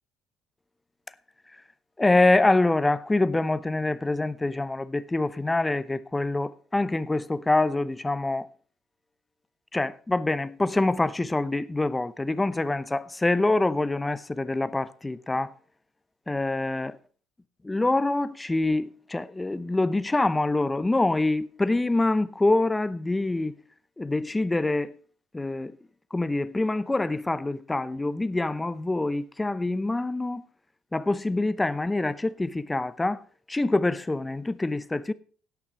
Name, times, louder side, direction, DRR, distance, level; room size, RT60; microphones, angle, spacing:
voice 1, 2.0-8.5 9.7-15.5 16.3-17.0 17.6-23.6 24.0-25.0 25.3-25.8 26.1-30.4 30.9-33.2 33.5-35.1, left 2 dB, 15° left, 0.7 m, -25 dB
17.0 x 6.0 x 4.3 m
hypercardioid pair, 70°, 0 cm